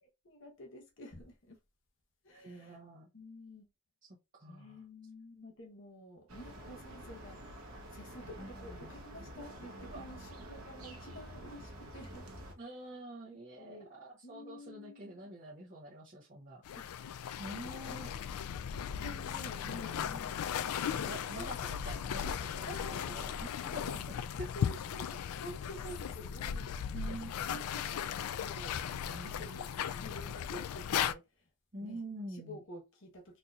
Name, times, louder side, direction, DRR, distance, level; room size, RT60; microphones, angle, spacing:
voice 1, 0.0-1.6 2.2-2.8 3.1-3.7 4.5-7.6 7.9-12.2 13.6-13.9 14.2-15.3 16.7-16.9 17.8-18.1 19.0-20.4 20.6-21.5 22.6-23.2 24.5-26.9 27.5-28.8 29.2-31.5 31.8-32.0 32.3-33.4, left 1 dB, 60° left, 0.9 m, -50 dB
voice 2, 2.3-3.1 4.0-4.8 8.2-8.9 9.9-10.2 12.6-16.6 17.4-18.1 19.6-20.2 20.9-24.5 26.9-27.3 28.8-29.6 31.7-32.6, right 1 dB, 35° right, 0.9 m, -47 dB
sound 1, 6.3-12.5, right 1 dB, 80° right, 0.9 m, -48 dB
sound 2, 16.6-31.1, left 8 dB, 85° left, 0.3 m, -37 dB
4.2 x 2.8 x 2.4 m
head